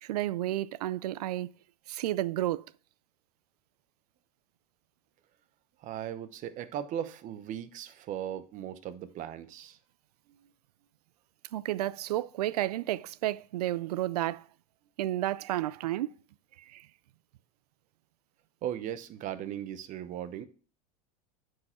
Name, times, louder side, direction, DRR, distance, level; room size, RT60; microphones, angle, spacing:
voice 1, 0.0-1.5 1.9-2.7 11.5-14.4 15.0-16.2 16.7-16.9, right 14 dB, 85° right, 0.4 m, -31 dB
voice 2, 5.8-9.8 10.3-10.5 18.6-20.5, right 10 dB, 40° right, 0.9 m, -38 dB
9.6 x 4.8 x 4.4 m
hypercardioid pair, 110°, 19 cm